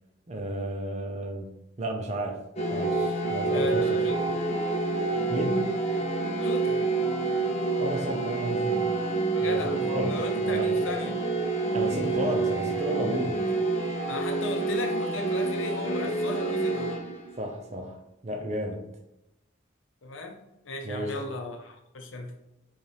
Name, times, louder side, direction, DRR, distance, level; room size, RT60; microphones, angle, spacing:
voice 1, 0.3-2.4 2.7-4.0 5.3-5.8 7.8-9.0 9.4-10.8 11.7-13.5 17.4-18.9 20.8-21.2, right 1 dB, 35° right, 2 dB, 0.6 m, -33 dB
sound 1, 2.6-17.4, right 3 dB, 35° left, 0.6 m, -28 dB
voice 2, 3.5-4.2 6.4-6.8 9.3-11.2 14.1-17.0 20.0-20.4 20.6-22.3, left 2 dB, 90° left, 4 dB, 0.7 m, -36 dB
5.0 x 2.4 x 3.3 m, 0.90 s
head